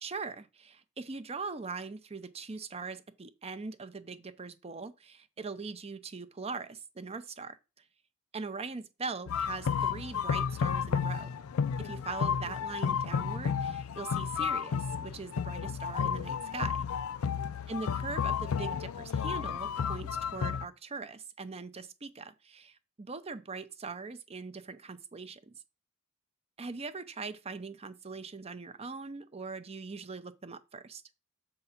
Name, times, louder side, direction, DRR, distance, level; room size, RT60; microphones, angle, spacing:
voice 1, 0.0-7.6 8.3-11.3 11.8-16.8 17.7-25.5 26.6-31.0, right 4 dB, 30° right, 0.6 m, -41 dB
sound 1, 9.3-20.7, left 7 dB, 80° left, 0.4 m, -32 dB
6.9 x 3.9 x 5.8 m
head